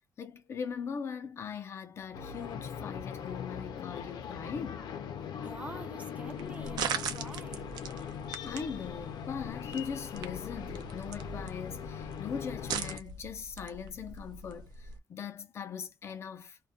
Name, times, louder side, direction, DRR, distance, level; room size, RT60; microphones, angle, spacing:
voice 1, 0.2-4.9 8.4-16.6, left 6 dB, 40° left, 0.5 m, -40 dB
sound 1, 2.1-13.0, left 8 dB, 90° left, 0.5 m, -41 dB
voice 2, 5.4-7.7, right 2 dB, 20° right, 0.4 m, -46 dB
sound 2, 6.3-15.0, right 6 dB, 85° right, 0.5 m, -41 dB
2.4 x 2.2 x 2.5 m
wide cardioid pair, 180°, 7 cm